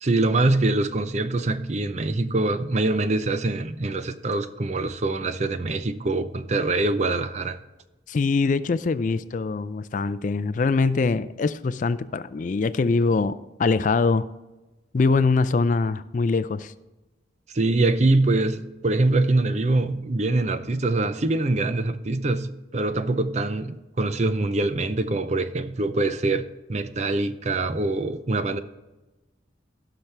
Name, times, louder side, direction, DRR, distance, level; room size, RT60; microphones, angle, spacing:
voice 1, 0.0-7.6 17.5-28.6, right 2 dB, 35° right, 0.5 m, -24 dB
voice 2, 8.1-14.3 14.9-16.7, left 4 dB, 40° left, 0.3 m, -23 dB
17.0 x 6.0 x 3.3 m
head